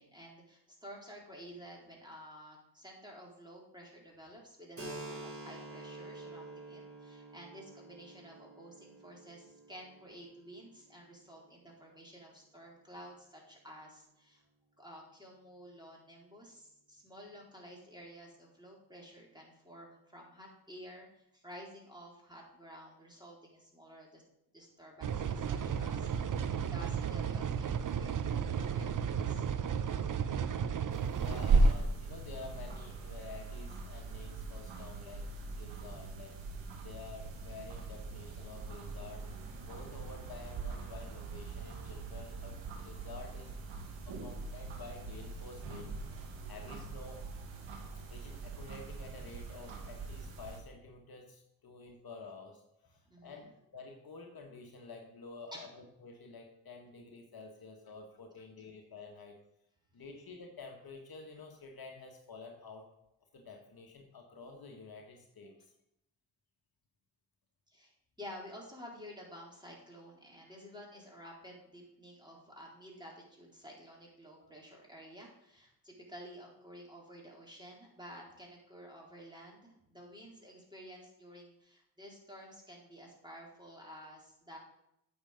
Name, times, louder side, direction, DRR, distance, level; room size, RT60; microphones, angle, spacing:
voice 1, 0.0-14.4 14.8-24.2 24.5-28.2 28.5-29.5 46.5-46.8 53.1-53.5 55.5-55.7 58.6-58.7 67.7-67.9 68.2-84.6, equal, 10° right, -3 dB, 4.3 m, -52 dB
Keyboard (musical), 4.8-12.1, right 2 dB, 30° right, 3.8 m, -49 dB
sound 1, 25.0-31.7, right 8 dB, 45° right, 0.8 m, -34 dB
sound 2, 30.9-50.6, right 3 dB, 70° right, 1.7 m, -37 dB
voice 2, 31.0-36.3 36.8-39.3 39.6-42.6 42.8-43.5 44.1-45.9 46.5-47.3 48.1-55.7 56.0-59.4 59.9-62.9 63.3-65.5 74.4-74.5, left 4 dB, 50° left, 2 dB, 1.6 m, -50 dB
8.8 x 7.0 x 5.1 m, 0.82 s
hypercardioid pair, 40°, 46 cm